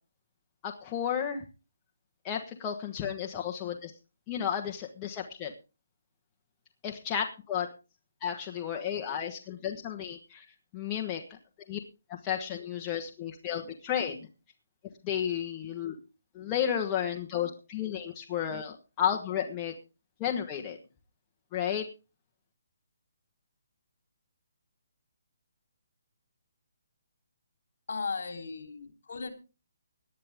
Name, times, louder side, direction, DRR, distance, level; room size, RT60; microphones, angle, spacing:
voice 1, 0.6-1.4 2.2-3.9 4.3-5.5 6.8-7.7 8.2-10.5 10.7-11.4 11.7-11.8 12.1-14.3 15.0-16.0 16.3-19.8 20.2-20.8 21.5-21.9, left 9 dB, 20° left, 2 dB, 1.3 m, -32 dB
voice 2, 27.9-29.3, left 4 dB, 65° left, 7 dB, 3.5 m, -36 dB
18.5 x 10.5 x 3.6 m, 0.32 s
hypercardioid pair, 165°, 0 cm